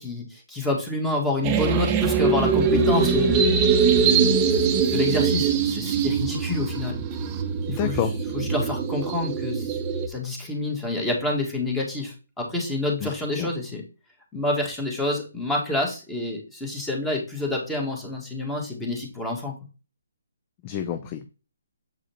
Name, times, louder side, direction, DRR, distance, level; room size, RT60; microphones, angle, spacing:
voice 1, 0.0-3.5 3.9-4.6 4.9-7.0 7.7-8.0 8.3-9.8 10.1-13.8 14.3-19.6, left 2 dB, 5° left, 0 dB, 1.8 m, -28 dB
sound 1, 1.4-10.1, right 6 dB, 20° right, 0.8 m, -22 dB
voice 2, 7.7-8.1 13.0-13.1 13.4-13.5 20.6-21.3, left 10 dB, 30° left, 7 dB, 0.6 m, -28 dB
7.6 x 4.8 x 3.0 m, 0.32 s
figure-of-eight pair, 140°, 0 cm